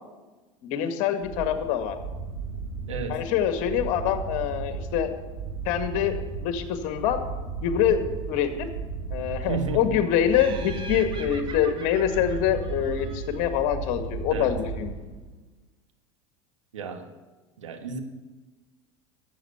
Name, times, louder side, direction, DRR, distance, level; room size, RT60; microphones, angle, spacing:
voice 1, 0.6-2.0 3.1-5.1 5.7-7.2 7.6-8.7 9.1-14.9, left 9 dB, 60° left, 8 dB, 1.9 m, -25 dB
sound 1, 1.2-15.5, right 4 dB, 50° right, 5.7 m, -35 dB
voice 2, 2.9-3.2 9.5-10.0 14.3-14.5 16.7-17.1 17.6-18.0, right 4 dB, 85° right, 6 dB, 1.6 m, -32 dB
Laughter, 10.3-13.6, right 4 dB, 30° right, 1.9 m, -43 dB
12.5 x 7.7 x 8.0 m, 1.2 s
hypercardioid pair, 85°, 16 cm